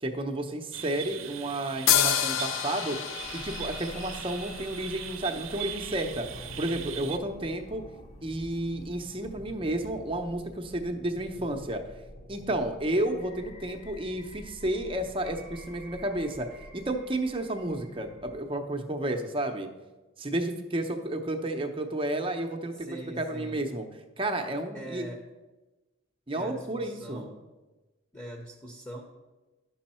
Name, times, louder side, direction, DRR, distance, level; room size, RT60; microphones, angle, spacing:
voice 1, 0.0-3.0 3.3-6.3 6.6-7.8 8.2-11.8 12.3-16.5 16.7-19.7 20.2-23.8 24.2-25.1 26.3-27.3, right 1 dB, 25° right, 5 dB, 0.7 m, -31 dB
sound 1, 0.7-7.2, right 10 dB, 85° right, 0.6 m, -40 dB
sound 2, 1.9-5.4, left 10 dB, 80° left, 0.5 m, -29 dB
sound 3, 3.2-18.4, equal, 35° left, 0.9 m, -47 dB
voice 2, 22.7-23.6 24.7-25.3 26.3-27.4 28.1-29.0, right 1 dB, 15° left, 1 dB, 0.9 m, -42 dB
11.0 x 6.2 x 4.3 m, 1.2 s
head